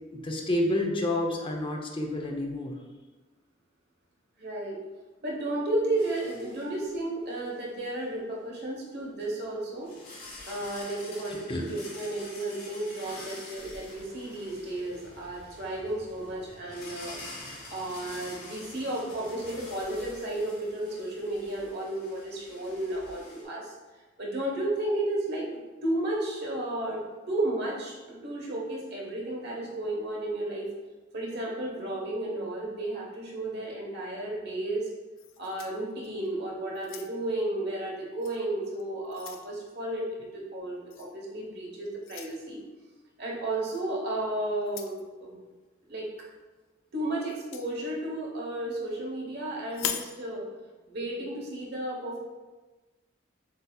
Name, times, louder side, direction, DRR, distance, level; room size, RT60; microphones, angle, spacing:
voice 1, 0.1-2.7 11.5-11.8, left 1 dB, 25° left, 1 dB, 0.6 m, -29 dB
voice 2, 4.4-4.8 5.2-9.9 10.5-17.2 17.7-23.7 24.2-25.5 25.8-30.7 31.1-34.9 35.4-40.1 40.3-42.6 43.2-45.4 45.9-46.1 46.9-50.4 50.9-52.2, right 1 dB, 55° right, -2 dB, 1.1 m, -33 dB
sound 1, 6.0-7.0 7.3-7.5 9.2-9.3 9.8-23.4, left 2 dB, 50° left, 1.3 m, -47 dB
sound 2, 13.8-21.2, right 1 dB, 80° right, 1.3 m, -56 dB
sound 3, 35.2-36.3 36.7-37.4 38.2-38.4 38.8-39.5 40.9-41.1 42.0-42.4 43.7-43.8 44.6-45.0 47.3-47.7 49.7-50.2, left 9 dB, 80° left, 0.4 m, -39 dB
7.4 x 2.8 x 2.3 m, 1.2 s
head